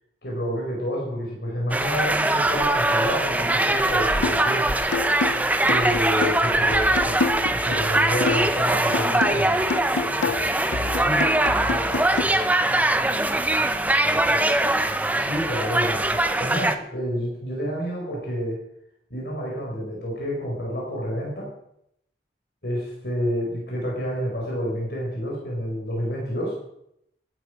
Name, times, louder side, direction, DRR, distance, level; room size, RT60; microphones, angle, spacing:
voice 1, 0.2-4.6 5.6-7.2 7.5-9.5 15.1-18.6 19.1-21.5 22.6-26.5, equal, 65° left, -3 dB, 5.0 m, -29 dB
sound 1, 1.7-16.7, right 1 dB, 10° right, 0.6 m, -22 dB
sound 2, 4.2-4.5 4.9-8.6 8.9-12.2, left 4 dB, 90° left, 0.6 m, -29 dB
voice 2, 10.2-12.7 13.5-14.6, left 2 dB, 40° left, -3 dB, 5.8 m, -37 dB
14.5 x 12.0 x 5.1 m, 0.76 s
head